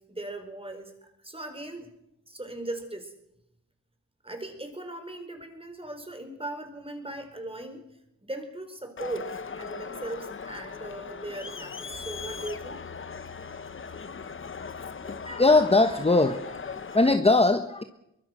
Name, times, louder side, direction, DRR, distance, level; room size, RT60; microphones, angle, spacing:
voice 1, 0.1-1.9 2.3-3.1 4.2-7.8 8.2-12.8, right 1 dB, 20° right, 4.7 m, -38 dB
Crowd, 9.0-17.2, left 5 dB, 40° left, 1.1 m, -39 dB
voice 2, 15.0-17.8, left 2 dB, 20° left, 1.2 m, -21 dB
23.5 x 21.0 x 6.5 m
wide cardioid pair, 90°, 31 cm